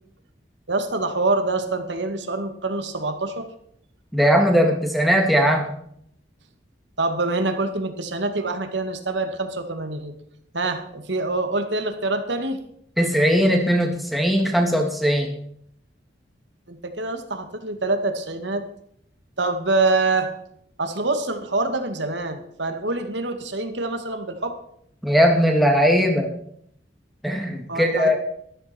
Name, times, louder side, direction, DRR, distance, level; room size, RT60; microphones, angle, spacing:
voice 1, 0.7-3.5 7.0-10.1 10.5-12.6 16.7-18.6 19.4-20.3 20.8-24.5 27.7-28.2, right 2 dB, 75° right, 7 dB, 2.1 m, -25 dB
voice 2, 4.1-5.7 13.0-15.3 25.0-26.3 27.2-28.2, equal, ahead, 1 dB, 2.4 m, -19 dB
13.5 x 13.5 x 4.5 m, 0.68 s
head